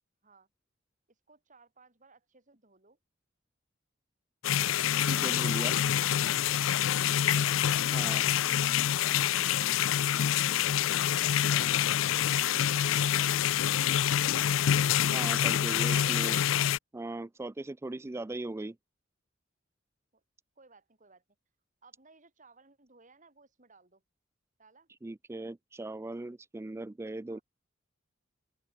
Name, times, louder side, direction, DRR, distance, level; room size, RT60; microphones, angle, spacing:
voice 1, 1.1-3.0 7.0-7.5 8.6-9.5 15.8-16.6 20.1-20.2 20.6-21.2 21.8-24.0 24.6-24.9 27.3-27.4, right 3 dB, 40° right, 4.7 m, -61 dB
sound 1, 4.4-16.8, left 10 dB, 90° left, 0.4 m, -26 dB
voice 2, 5.0-5.8 7.9-8.2 15.1-16.4 16.9-18.8 25.0-27.4, right 2 dB, 15° right, 0.3 m, -38 dB
open air
head